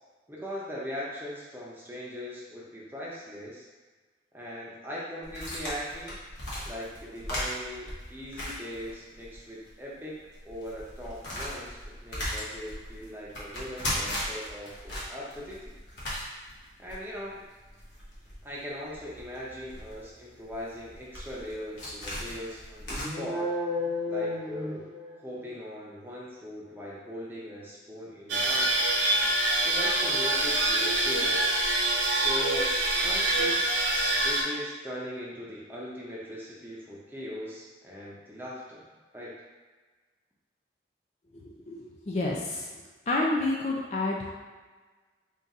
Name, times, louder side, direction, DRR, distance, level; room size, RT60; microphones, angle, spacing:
voice 1, 0.3-3.6 4.3-6.2 6.7-15.7 16.8-17.4 18.4-23.6 24.1-24.9 25.2-28.8 29.6-31.4 32.1-32.7 33.0-33.6 34.2-38.8 39.1-39.3, equal, 10° right, -6 dB, 0.7 m, -40 dB
sound 1, 5.2-9.4 9.7-9.8 10.3-23.0, left 1 dB, 80° left, 1.2 m, -38 dB
sound 2, 22.9-25.4, left 2 dB, 65° left, 1.2 m, -32 dB
sound 3, 28.3-34.4, right 2 dB, 85° right, 0.7 m, -25 dB
voice 2, 41.4-42.7 43.1-44.3, left 2 dB, 35° left, -3 dB, 0.5 m, -29 dB
3.7 x 2.6 x 4.1 m, 1.3 s
head